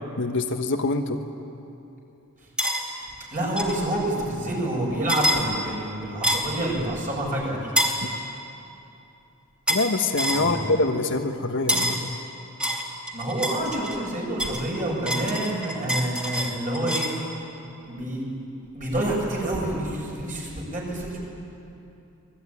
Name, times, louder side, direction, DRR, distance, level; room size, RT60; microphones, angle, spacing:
voice 1, 0.2-1.2 8.0-8.1 9.7-12.1, left 2 dB, 60° left, 5 dB, 1.4 m, -25 dB
sound 1, 2.6-2.8 3.6-3.8 5.1-5.4 6.2-6.6 7.8-8.0 9.7-9.9 10.2-10.5 11.7-12.0 12.6-14.0 14.4-17.2, equal, 5° right, 2.9 m, -26 dB
voice 2, 3.3-7.7 10.3-10.6 13.1-17.1 17.8-18.2 18.7-21.2, right 1 dB, 35° right, -3 dB, 7.7 m, -28 dB
25.5 x 20.5 x 9.9 m, 2.8 s
head